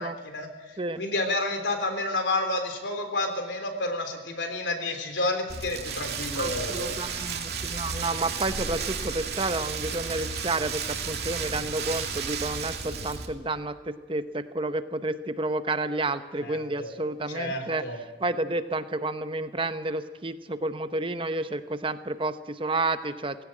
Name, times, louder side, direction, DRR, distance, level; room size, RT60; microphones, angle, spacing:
voice 1, 0.0-6.9 16.4-16.9 17.3-18.0, left 2 dB, 80° left, 6 dB, 3.5 m, -30 dB
Rain, 5.5-13.3, right 5 dB, 60° right, 2.6 m, -33 dB
voice 2, 6.3-17.8 18.2-23.4, right 2 dB, 30° right, 10 dB, 0.9 m, -30 dB
19.5 x 16.5 x 8.9 m, 1.3 s
head